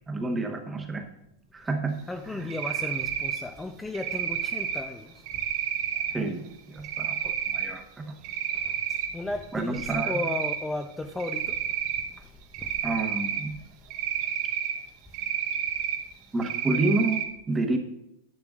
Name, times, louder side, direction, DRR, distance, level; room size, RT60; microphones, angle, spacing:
voice 1, 0.1-1.1 1.5-2.0 2.3-2.5 6.1-8.2 9.5-10.3 12.8-13.6 16.3-17.8, right 2 dB, 10° right, 1.0 m, -29 dB
voice 2, 2.1-5.4 8.5-11.6 12.0-12.3 12.6-12.8, left 2 dB, 5° left, 0.4 m, -35 dB
Cricket, 2.5-3.4 3.9-4.8 5.3-6.1 6.8-7.7 8.1-9.1 9.4-10.6 11.2-12.0 12.5-13.4 13.9-14.7 15.1-16.0 16.4-17.2, right 9 dB, 50° right, 1.3 m, -30 dB
10.5 x 8.5 x 2.4 m
supercardioid pair, 150°, 0 cm